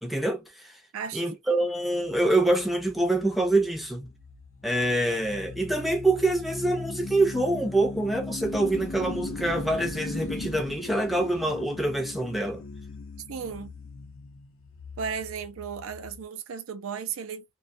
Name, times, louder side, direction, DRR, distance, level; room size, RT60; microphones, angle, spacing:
voice 1, 0.0-0.7 1.1-4.1 4.6-12.6, right 2 dB, ahead, 0.5 m, -25 dB
sound 1, 2.1-16.2, left 3 dB, 65° left, 0.6 m, -39 dB
voice 2, 13.3-13.7 15.0-17.4, right 6 dB, 70° right, 0.4 m, -35 dB
2.2 x 2.2 x 2.5 m
head